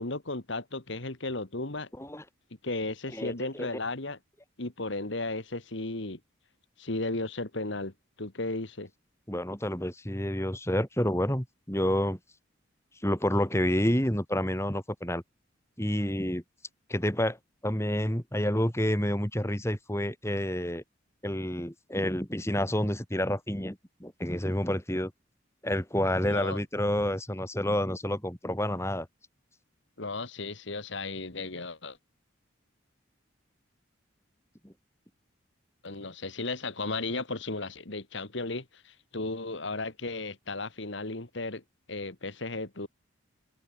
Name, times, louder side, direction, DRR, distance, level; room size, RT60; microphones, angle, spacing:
voice 1, 0.0-1.9 2.6-4.2 4.6-6.2 6.8-7.9 8.2-8.9 26.3-26.6 30.0-32.0 35.8-41.6 41.9-42.9, left 2 dB, 65° left, 2.0 m, -35 dB
voice 2, 3.1-3.7 9.3-12.2 13.0-15.2 15.8-16.4 16.9-17.4 17.6-20.8 21.2-25.1 25.6-29.1, equal, 15° left, 3.8 m, -29 dB
head